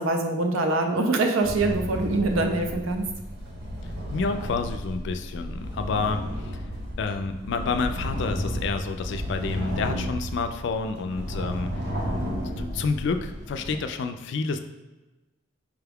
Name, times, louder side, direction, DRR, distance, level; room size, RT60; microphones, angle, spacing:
voice 1, 0.0-3.1, right 2 dB, 80° right, 5 dB, 0.5 m, -24 dB
sound 1, 1.4-13.8, equal, 55° right, 0.8 m, -33 dB
voice 2, 3.8-6.6 7.0-11.9 12.6-14.6, left 4 dB, 60° left, 7 dB, 0.3 m, -29 dB
4.8 x 2.3 x 3.4 m, 1.1 s
head